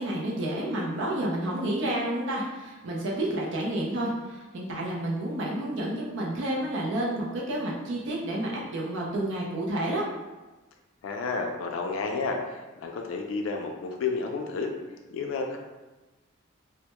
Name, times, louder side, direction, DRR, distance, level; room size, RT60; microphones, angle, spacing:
voice 1, 0.0-10.0, right 1 dB, 60° right, -3 dB, 0.4 m, -30 dB
voice 2, 11.0-14.7 15.1-15.6, left 4 dB, 75° left, 2 dB, 0.3 m, -31 dB
2.1 x 2.0 x 2.9 m, 1.1 s
head